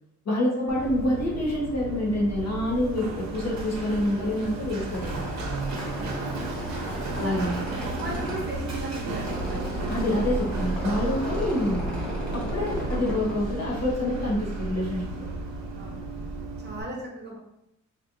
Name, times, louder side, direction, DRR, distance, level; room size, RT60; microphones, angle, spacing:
voice 1, 0.2-5.2 7.1-7.6 9.9-12.0 12.3-15.0, left 1 dB, 55° left, -5 dB, 1.3 m, -27 dB
Run, 0.7-16.8, right 2 dB, 65° right, 0.9 m, -33 dB
Squeak, 4.9-14.2, right 1 dB, 5° left, 1.1 m, -35 dB
voice 2, 6.0-6.5 7.1-9.8 15.8-16.2 16.6-17.4, right 1 dB, 35° right, -1 dB, 0.8 m, -38 dB
4.4 x 2.6 x 2.6 m, 0.81 s
wide cardioid pair, 165°, 30 cm